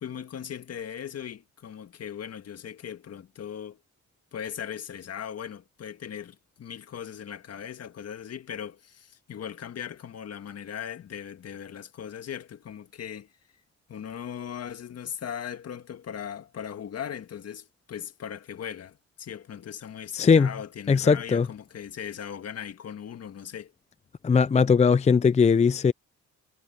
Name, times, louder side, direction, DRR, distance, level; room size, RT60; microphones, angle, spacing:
voice 1, 0.0-3.8 4.3-13.3 13.9-23.7, left 8 dB, 55° left, 1.8 m, -38 dB
voice 2, 20.1-20.5 20.9-21.5 24.2-25.9, left 5 dB, 20° left, 0.5 m, -19 dB
cardioid pair, 90°, 30 cm